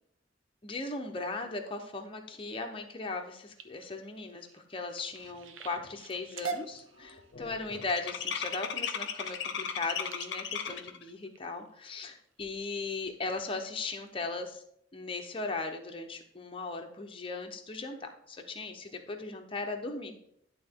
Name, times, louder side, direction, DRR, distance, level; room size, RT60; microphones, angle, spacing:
voice 1, 0.6-14.6 14.9-20.1, left 3 dB, 30° left, 3 dB, 0.9 m, -38 dB
sound 1, 3.2-11.9 12.5-12.8 13.2-13.6 14.1-14.2 14.5-14.6, right 5 dB, 85° right, 0.7 m, -45 dB
sound 2, 5.3-5.4 5.8-6.1 6.4-11.0, left 7 dB, 65° left, 0.8 m, -36 dB
11.0 x 3.8 x 3.7 m, 0.69 s
head